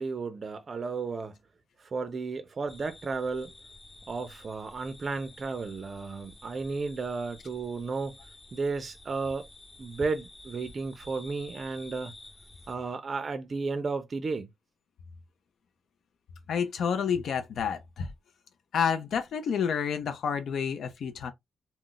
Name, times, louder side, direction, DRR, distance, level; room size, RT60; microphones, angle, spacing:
voice 1, 0.0-1.4 1.8-3.5 4.1-8.2 8.5-9.5 9.8-12.1 12.7-14.5, right 4 dB, 40° right, 0.4 m, -33 dB
sound 1, 2.7-12.7, left 2 dB, 25° left, 1.0 m, -51 dB
voice 2, 16.5-18.1 18.7-21.3, left 7 dB, 70° left, 0.5 m, -29 dB
2.3 x 2.0 x 3.8 m
cardioid pair, 110°, 0 cm